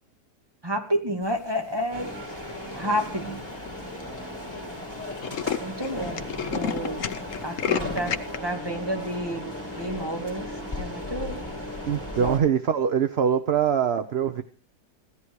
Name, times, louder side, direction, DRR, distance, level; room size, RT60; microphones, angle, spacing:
voice 1, 0.6-2.1 2.7-3.4 5.6-6.2 6.5-7.0 7.4-9.5 9.8-11.4 12.2-12.4, equal, 15° right, 3 dB, 2.4 m, -30 dB
sound 1, 1.9-12.4, left 1 dB, 5° left, 5.7 m, -36 dB
Tools, 2.3-2.7 3.3-3.4 3.7-3.8 4.0-4.2 4.5-4.6 4.9-8.4, left 8 dB, 55° left, 1.2 m, -30 dB
voice 2, 11.9-14.4, right 8 dB, 50° right, 9 dB, 0.9 m, -23 dB
16.5 x 13.0 x 4.7 m, 0.39 s
omnidirectional pair, 1.8 m